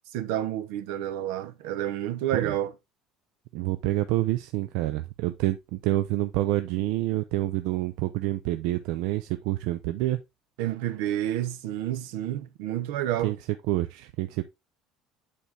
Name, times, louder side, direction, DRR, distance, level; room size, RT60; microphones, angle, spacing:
voice 1, 0.1-2.7 10.6-13.4, right 12 dB, 85° right, 0.9 m, -29 dB
voice 2, 3.5-10.2 13.2-13.4 13.7-14.5, right 16 dB, 70° right, 0.5 m, -27 dB
8.5 x 4.1 x 3.4 m
cardioid pair, 175°, 0 cm